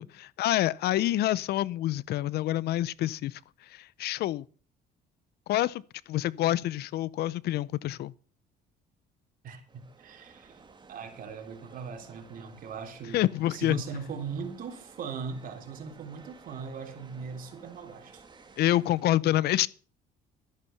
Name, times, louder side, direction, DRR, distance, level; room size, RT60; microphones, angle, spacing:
voice 1, 0.0-3.4 3.7-4.4 5.5-5.8 6.1-8.1 13.1-13.8 18.6-19.7, left 14 dB, 70° left, 0.7 m, -27 dB
voice 2, 9.4-10.6 10.9-13.2 13.5-18.2, right 6 dB, 55° right, 3.6 m, -39 dB
sound 1, 9.7-19.0, right 4 dB, 25° right, 2.2 m, -54 dB
13.0 x 11.0 x 5.8 m
cardioid pair, 110°, 17 cm